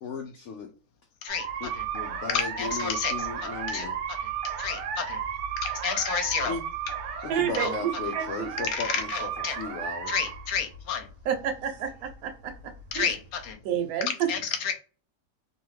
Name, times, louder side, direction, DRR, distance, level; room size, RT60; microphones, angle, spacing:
voice 1, 0.0-0.7 1.6-4.0 6.4-6.6 7.2-10.2, left 5 dB, 90° left, 0.6 m, -36 dB
sound 1, 1.3-13.5, right 7 dB, 90° right, 1.3 m, -34 dB
voice 2, 2.3-3.1 3.7-3.9 4.6-5.2 5.6-6.6 7.5-7.7 8.7-9.6 10.1-11.1 12.9-13.6 14.1-14.7, left 7 dB, 70° left, 1.0 m, -30 dB
voice 3, 7.3-8.5 11.2-12.5 12.9-13.1 13.6-14.3, right 9 dB, 70° right, 1.1 m, -29 dB
2.8 x 2.3 x 3.0 m
omnidirectional pair, 1.8 m